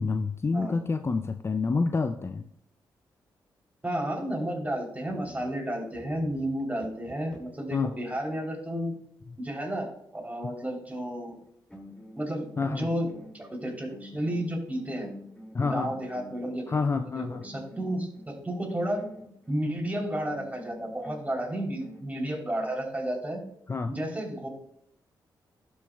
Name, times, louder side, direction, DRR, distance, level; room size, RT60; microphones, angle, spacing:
voice 1, 0.0-2.4 7.7-7.9 9.3-9.4 10.4-10.5 12.6-12.9 15.5-15.9 16.7-17.4 23.7-24.0, left 4 dB, 30° left, 9 dB, 0.4 m, -28 dB
voice 2, 3.8-8.9 9.4-11.3 12.1-13.1 13.3-15.1 15.6-16.8 17.4-19.0 19.5-23.4 23.9-24.5, right 1 dB, 15° right, -1 dB, 3.2 m, -32 dB
sound 1, 5.1-7.7 11.3-11.4 11.7-16.8 17.4-19.7 20.3-22.1, left 1 dB, 10° left, 2.3 m, -49 dB
12.0 x 6.3 x 2.3 m, 0.73 s
supercardioid pair, 55°, 9 cm